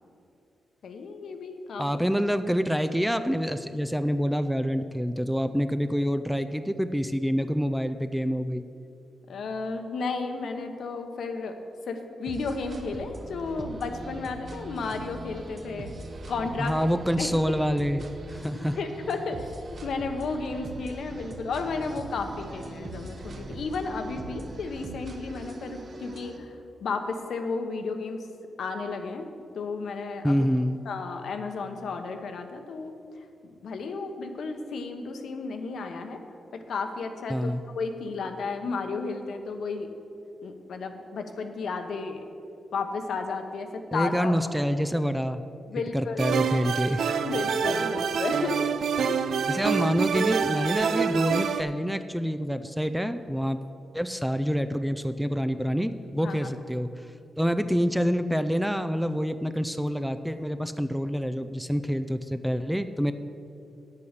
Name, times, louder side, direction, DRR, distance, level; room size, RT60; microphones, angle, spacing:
voice 1, 0.8-1.8 9.3-11.6 11.9-15.9 16.3-16.9 17.2-17.6 18.5-28.3 28.6-30.5 30.8-33.0 33.4-36.2 36.5-39.9 40.4-42.2 42.7-44.4 45.7-46.3 47.2-48.7 49.1-49.2 56.2-56.5, left 4 dB, 70° left, 6 dB, 1.0 m, -33 dB
voice 2, 1.8-8.6 16.6-18.8 30.2-30.8 37.3-37.6 43.9-45.4 45.9-47.0 49.5-53.6 53.9-56.9 57.4-63.1, equal, ahead, 10 dB, 0.4 m, -27 dB
Complex Property, 12.3-26.4, right 2 dB, 45° right, 1.0 m, -41 dB
sound 1, 46.2-51.6, right 6 dB, 75° right, 0.5 m, -26 dB
9.4 x 8.4 x 6.5 m, 2.6 s
wide cardioid pair, 125°, 0 cm